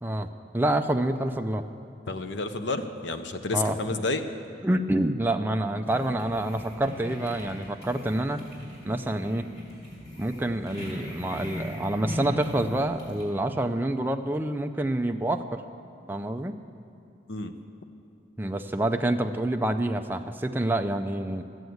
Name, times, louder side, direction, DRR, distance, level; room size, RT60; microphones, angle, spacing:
voice 1, 0.5-1.6 3.5-3.8 4.6-8.4 8.8-9.5 10.2-15.6 16.1-16.6 18.4-21.5, right 1 dB, 10° right, 6 dB, 0.4 m, -27 dB
voice 2, 2.1-4.2 17.3-17.5, left 3 dB, 75° left, 8 dB, 0.8 m, -30 dB
sound 1, 5.8-13.2, equal, 35° left, 3.9 m, -39 dB
14.5 x 8.0 x 7.9 m, 2.6 s
head